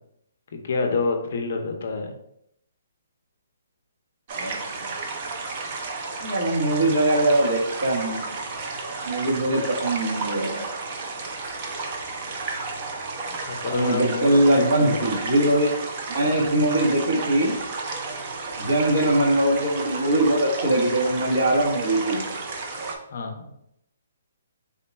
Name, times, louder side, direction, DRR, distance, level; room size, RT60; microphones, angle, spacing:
voice 1, 0.5-2.1 13.3-15.1 23.1-23.5, left 4 dB, 40° left, 4 dB, 0.5 m, -28 dB
sound 1, 4.3-23.0, right 3 dB, 25° right, 0.4 m, -32 dB
voice 2, 4.3-4.9 6.2-8.3 9.0-10.6 13.7-15.7 16.1-17.5 18.6-22.2, right 1 dB, 60° right, -5 dB, 1.1 m, -22 dB
3.6 x 2.2 x 4.1 m, 0.76 s
hypercardioid pair, 180°, 0 cm